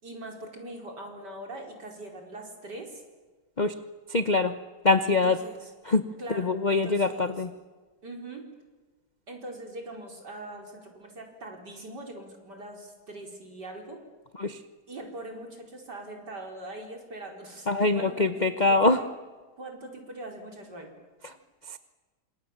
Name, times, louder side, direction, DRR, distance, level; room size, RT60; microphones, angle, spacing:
voice 1, 0.0-3.0 5.1-5.7 6.2-7.4 8.0-8.5 9.3-14.0 14.9-19.1 19.6-20.9, right 1 dB, 50° right, 2 dB, 5.3 m, -42 dB
voice 2, 4.1-4.5 4.8-5.4 5.8-7.5 14.4-14.6 17.7-19.0 21.2-21.3 21.7-21.8, left 3 dB, 35° left, 10 dB, 0.7 m, -24 dB
29.5 x 27.0 x 7.4 m, 1.3 s
omnidirectional pair, 2.3 m